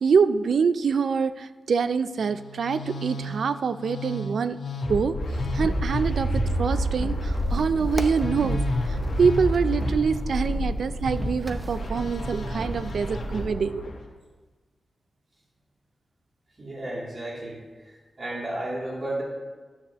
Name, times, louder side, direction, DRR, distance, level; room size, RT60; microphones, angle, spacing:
voice 1, 0.0-4.6 4.9-5.2 5.5-8.6 8.9-13.9, right 5 dB, 70° right, 13 dB, 0.4 m, -25 dB
Musical instrument, 2.2-14.0, left 2 dB, 90° left, 1.6 m, -31 dB
sound 1, 5.2-13.5, right 3 dB, 15° right, 0.6 m, -32 dB
voice 2, 16.6-19.2, right 1 dB, 35° right, -4 dB, 2.9 m, -33 dB
13.0 x 9.5 x 3.0 m, 1.4 s
wide cardioid pair, 135°, 0 cm